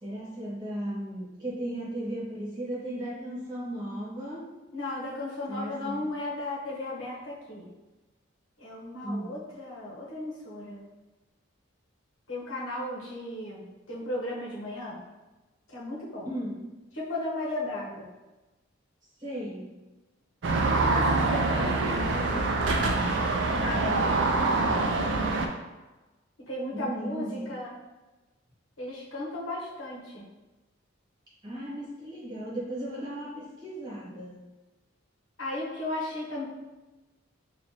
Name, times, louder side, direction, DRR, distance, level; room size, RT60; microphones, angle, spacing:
voice 1, 0.0-4.5 5.5-6.1 9.0-9.3 16.2-16.6 19.2-19.7 26.7-27.6 31.4-34.4, right 1 dB, 20° right, -7 dB, 1.2 m, -36 dB
voice 2, 4.7-7.7 8.6-10.8 12.3-15.0 15.7-16.3 17.0-18.0 20.8-22.5 23.5-24.3 26.5-27.7 28.8-30.3 35.4-36.4, left 1 dB, 75° left, -5 dB, 1.1 m, -35 dB
sound 1, 20.4-25.5, right 3 dB, 60° right, 0.4 m, -25 dB
4.1 x 2.5 x 2.8 m, 1.1 s
head